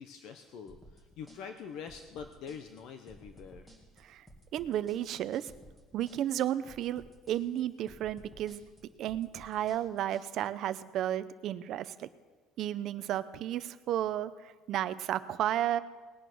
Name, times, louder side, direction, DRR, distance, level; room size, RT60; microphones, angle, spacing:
voice 1, 0.0-3.7, left 6 dB, 55° left, 7 dB, 0.8 m, -45 dB
sound 1, 0.7-10.3, right 1 dB, 5° left, 2.1 m, -55 dB
voice 2, 4.5-5.5 5.9-7.0 7.3-8.6 9.0-12.1 12.6-14.3 14.7-15.8, right 11 dB, 45° right, 13 dB, 0.6 m, -32 dB
19.0 x 9.1 x 6.2 m, 1.3 s
cardioid pair, 170°, 0 cm